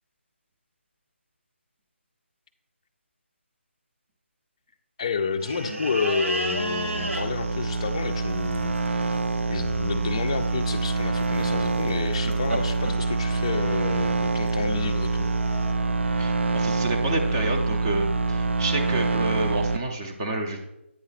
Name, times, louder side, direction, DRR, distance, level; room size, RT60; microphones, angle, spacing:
voice 1, 5.0-9.2 9.5-15.3, left 5 dB, 25° left, 7 dB, 0.4 m, -30 dB
sound 1, 5.4-15.7, right 1 dB, 80° right, 1.1 m, -36 dB
sound 2, 6.4-19.8, right 3 dB, 65° right, 0.4 m, -26 dB
voice 2, 16.2-20.7, right 2 dB, 20° right, 3 dB, 0.7 m, -29 dB
8.9 x 3.7 x 5.8 m, 0.90 s
hypercardioid pair, 170°, 7 cm